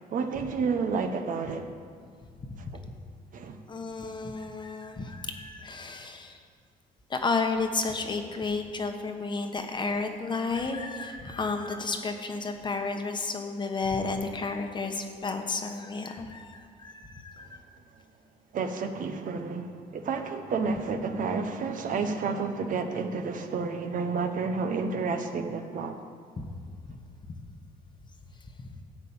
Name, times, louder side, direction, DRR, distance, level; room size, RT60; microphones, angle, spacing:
voice 1, 0.1-1.7 3.3-3.6 18.5-26.0, right 4 dB, 50° right, 7 dB, 1.0 m, -30 dB
voice 2, 3.7-6.4 7.1-17.6 26.4-26.5 26.9-27.0 27.3-27.4 28.6-28.8, left 4 dB, 25° left, 5 dB, 1.1 m, -32 dB
13.0 x 5.2 x 8.8 m, 2.1 s
cardioid pair, 110°, 17 cm